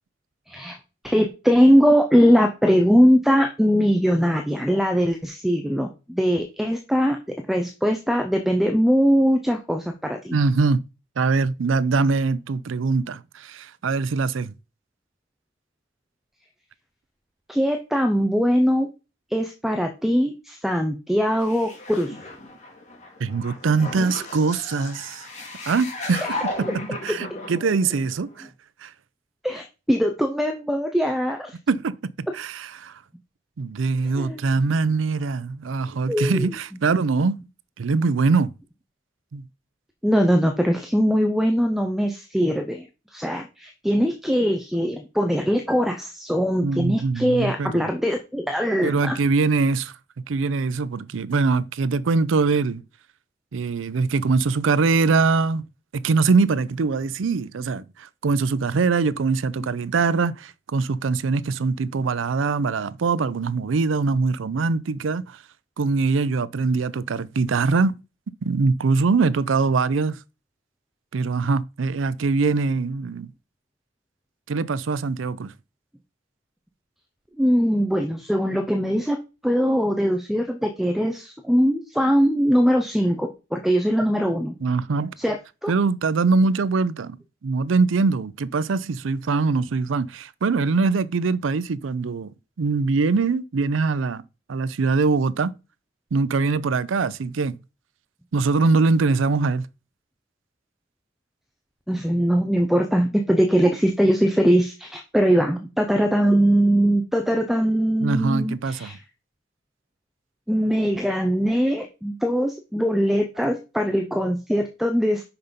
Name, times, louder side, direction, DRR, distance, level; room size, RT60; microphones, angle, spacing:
voice 1, 0.5-0.8 1.0-7.2 7.5-10.4 17.5-18.9 19.3-22.2 29.4-31.6 34.1-34.4 36.1-36.5 40.0-42.9 43.1-49.2 59.6-59.7 77.4-79.2 79.4-84.5 85.2-85.4 85.6-85.7 101.9-109.0 110.5-115.2, equal, ahead, 0.6 m, -21 dB
voice 2, 10.3-10.8 11.2-14.5 23.2-25.3 25.7-26.7 27.0-28.5 28.8-28.9 31.7-32.0 32.3-33.0 33.6-37.4 37.8-38.5 39.3-39.4 46.6-47.9 48.8-49.9 50.3-52.8 53.5-55.7 55.9-65.4 65.8-68.0 68.4-70.2 71.1-73.3 74.5-75.5 84.6-85.1 85.7-92.3 92.6-94.2 94.5-95.6 96.1-97.6 98.3-99.7 108.0-108.9, right 4 dB, 85° right, 0.5 m, -22 dB
sound 1, 21.4-28.5, left 2 dB, 35° left, 2.0 m, -35 dB
5.9 x 5.5 x 5.2 m
head